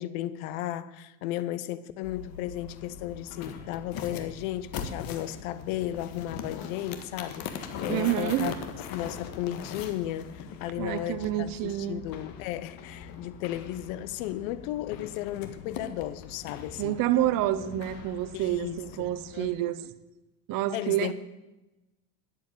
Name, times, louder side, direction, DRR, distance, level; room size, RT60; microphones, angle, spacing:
voice 1, 0.0-8.5 8.9-17.0 18.3-19.5 20.7-21.1, left 13 dB, 70° left, 1.0 m, -35 dB
sound 1, 2.0-19.5, left 7 dB, 50° left, 1.6 m, -41 dB
voice 2, 7.9-8.5 10.8-12.0 16.8-19.8 20.5-21.1, right 13 dB, 50° right, 1.0 m, -28 dB
10.5 x 8.0 x 8.9 m
supercardioid pair, 105°, 44 cm